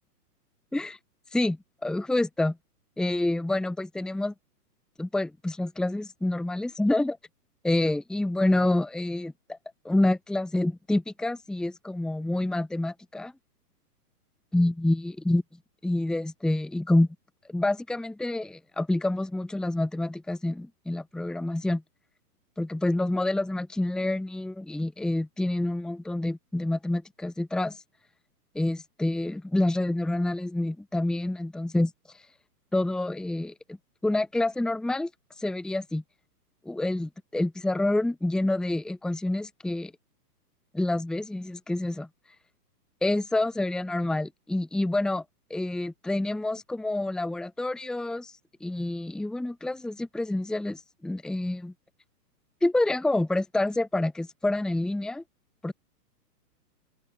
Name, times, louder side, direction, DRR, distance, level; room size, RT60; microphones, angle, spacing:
voice 1, 1.3-2.6 3.0-4.3 5.0-7.2 7.6-9.6 9.8-13.3 14.5-15.4 15.8-17.1 17.5-21.8 22.6-27.8 28.5-31.9 32.7-33.8 34.0-35.1 35.4-36.0 36.6-39.9 40.7-42.1 43.0-45.2 45.5-51.7 52.6-55.2 55.6-55.7, left 2 dB, ahead, 1.6 m, -27 dB
open air
hypercardioid pair, 165°, 48 cm